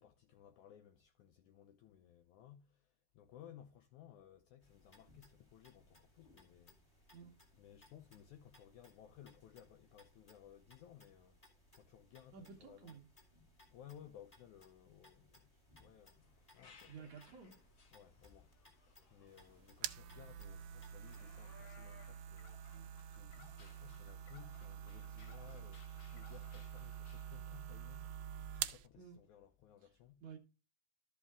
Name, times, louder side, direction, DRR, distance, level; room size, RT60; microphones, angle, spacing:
voice 1, 0.0-7.2 7.5-13.0 13.7-17.2 17.9-18.5 18.9-30.2, left 10 dB, 80° left, 1.8 m, -60 dB
sound 1, 4.6-21.2, left 1 dB, 15° left, 1.6 m, -67 dB
voice 2, 12.3-13.1 16.9-17.6 22.7-22.9 29.0-29.2 29.8-29.9 30.2-30.4, right 6 dB, 65° right, 2.1 m, -53 dB
sound 2, 16.2-27.4, left 5 dB, 60° left, 1.3 m, -65 dB
sound 3, 19.3-28.9, right 10 dB, 80° right, 2.3 m, -47 dB
12.5 x 5.6 x 3.6 m
omnidirectional pair, 4.2 m